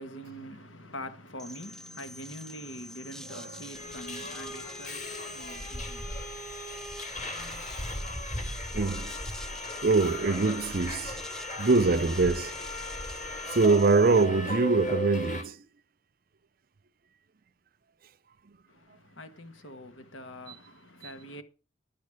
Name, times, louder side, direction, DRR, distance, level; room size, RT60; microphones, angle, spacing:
voice 1, 0.0-6.3 18.7-21.4, equal, 75° left, 1.7 m, -44 dB
sound 1, 1.4-14.3, left 1 dB, 5° left, 0.7 m, -46 dB
Subway metro underground, 3.7-15.4, left 1 dB, 40° left, 3.5 m, -37 dB
voice 2, 5.0-5.3 8.7-9.1 9.8-11.2 11.6-12.5 13.5-15.6 21.0-21.1, right 3 dB, 45° right, 0.5 m, -24 dB
11.5 x 8.4 x 6.1 m
head